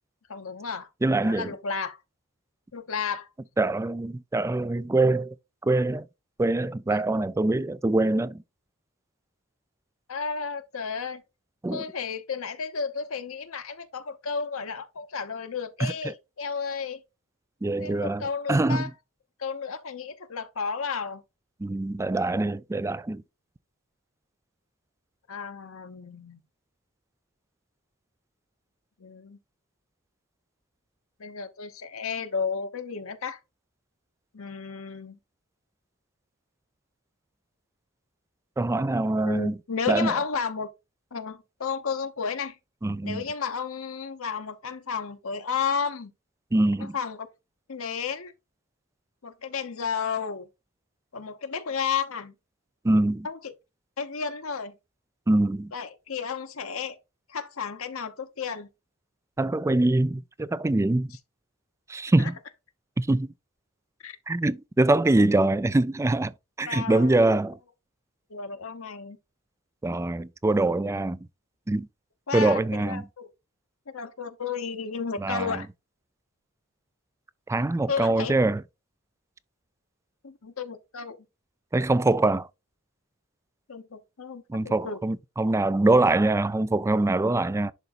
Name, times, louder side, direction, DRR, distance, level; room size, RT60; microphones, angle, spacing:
voice 1, 0.3-0.9 1.2-2.0 2.7-3.3 10.1-11.2 11.7-17.0 17.8-18.9 19.4-21.2 25.3-26.4 29.0-29.4 31.2-33.4 34.3-35.2 39.2-40.7 41.1-42.5 43.0-46.1 46.8-47.3 47.7-48.3 49.2-50.5 51.1-52.3 53.2-53.5 54.0-54.7 55.7-57.0 57.3-58.7 62.2-62.3 64.0-64.2 66.7-67.1 68.3-69.2 72.3-73.3 73.9-75.7 77.9-78.3 80.2-81.2 83.7-85.0, left 5 dB, 70° left, 0.9 m, -32 dB
voice 2, 1.0-1.5 3.6-5.3 5.6-6.1 6.4-8.4 11.6-11.8 15.8-16.1 17.6-18.9 21.6-23.2 38.6-39.6 39.9-40.2 42.8-43.2 46.5-47.0 52.8-53.3 55.3-55.7 59.4-61.1 61.9-62.3 63.0-63.3 64.3-66.3 66.6-67.6 69.8-71.2 71.7-71.9 72.3-73.0 75.2-75.6 77.5-78.6 81.7-82.5 84.5-87.7, right 2 dB, 15° right, 0.3 m, -24 dB
11.0 x 3.9 x 2.5 m
head